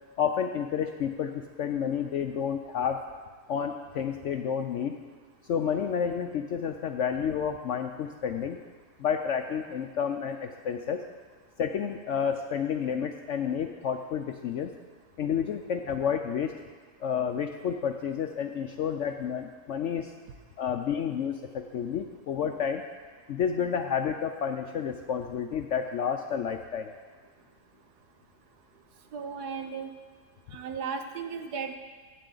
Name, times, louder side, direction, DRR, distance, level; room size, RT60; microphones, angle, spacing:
voice 1, 0.2-3.0 3.5-4.9 5.5-8.6 9.0-11.0 11.6-14.7 15.2-16.5 17.0-20.1 20.6-22.8 23.3-26.9, left 7 dB, 65° left, 5 dB, 0.7 m, -30 dB
voice 2, 29.1-29.9 30.5-31.8, right 6 dB, 80° right, 6 dB, 1.4 m, -35 dB
15.5 x 8.3 x 3.9 m, 1.5 s
omnidirectional pair, 1.7 m